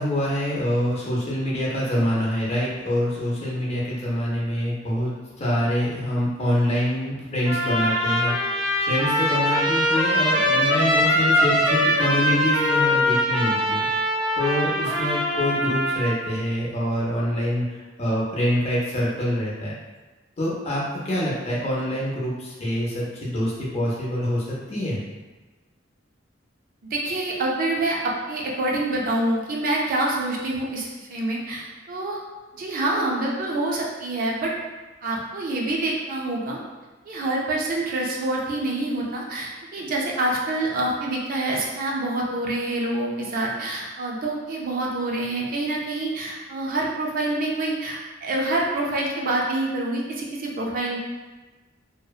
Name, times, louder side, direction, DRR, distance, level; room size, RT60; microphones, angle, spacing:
voice 1, 0.0-8.6 8.9-13.9 14.4-17.7 18.0-19.7 20.4-25.0, equal, 35° left, -5 dB, 0.5 m, -25 dB
Trumpet, 7.5-16.2, equal, 85° right, 0.8 m, -22 dB
voice 2, 26.8-32.2 32.5-34.5 35.0-36.6 37.1-51.0, right 2 dB, 45° right, -2 dB, 0.4 m, -26 dB
2.6 x 2.0 x 2.3 m, 1.2 s
head